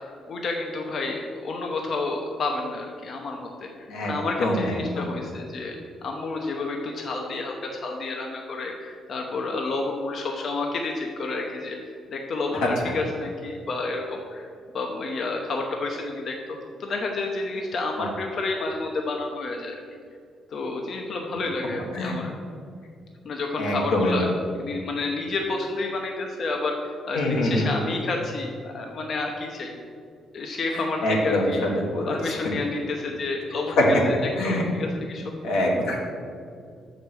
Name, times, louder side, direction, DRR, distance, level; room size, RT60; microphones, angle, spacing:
voice 1, 0.3-5.8 6.0-11.8 12.1-14.5 14.7-19.8 20.5-22.3 23.2-24.3 24.6-26.8 27.0-29.7 30.3-31.7 32.0-34.1 34.4-35.2, left 3 dB, 55° left, 1 dB, 0.8 m, -30 dB
voice 2, 4.4-5.1 18.0-18.1 21.9-22.2 23.6-24.2 27.1-27.7 30.7-31.5 31.7-32.5 33.8-33.9 34.4-34.6 35.4-36.1, left 1 dB, 90° left, -1 dB, 1.6 m, -25 dB
6.5 x 5.1 x 6.2 m, 2.3 s
cardioid pair, 90°, 0 cm